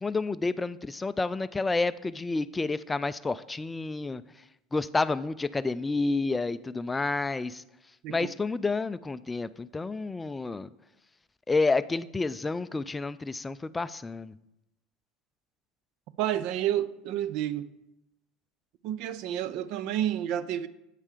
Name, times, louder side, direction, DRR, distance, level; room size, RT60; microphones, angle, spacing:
voice 1, 0.0-4.2 4.7-7.6 8.1-10.7 11.5-14.3, left 3 dB, 15° left, 0.3 m, -29 dB
voice 2, 16.2-17.7 18.8-20.7, right 11 dB, 65° right, 0.4 m, -30 dB
8.3 x 5.4 x 5.0 m
hypercardioid pair, 90°, 0 cm